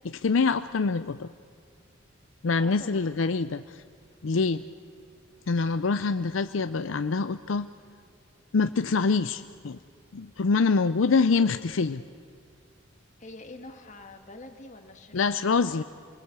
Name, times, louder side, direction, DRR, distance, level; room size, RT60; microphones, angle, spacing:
voice 1, 0.0-1.3 2.4-3.8 4.2-4.6 5.5-7.7 8.5-9.8 10.1-12.0 15.1-15.8, left 4 dB, 75° left, 11 dB, 0.5 m, -25 dB
voice 2, 2.6-3.2 13.2-15.8, left 2 dB, 40° left, 5 dB, 2.0 m, -46 dB
27.0 x 20.5 x 8.2 m, 2.1 s
head